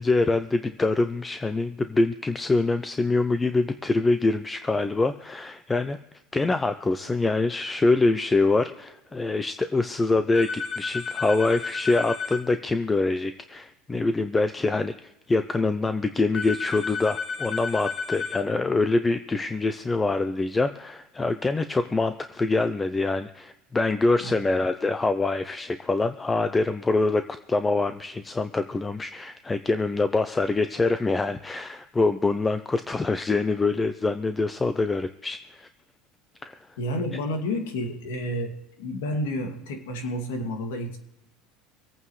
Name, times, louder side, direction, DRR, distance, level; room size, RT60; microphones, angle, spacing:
voice 1, 0.0-6.0 6.3-27.2 27.5-35.7 36.4-36.6, left 3 dB, 15° left, 10 dB, 0.5 m, -25 dB
sound 1, 10.3-12.4 16.3-18.4, left 5 dB, 45° left, 3.0 m, -32 dB
voice 2, 36.8-41.0, left 1 dB, 90° left, 4 dB, 2.3 m, -30 dB
25.5 x 8.9 x 3.2 m, 0.96 s
supercardioid pair, 130°, 0 cm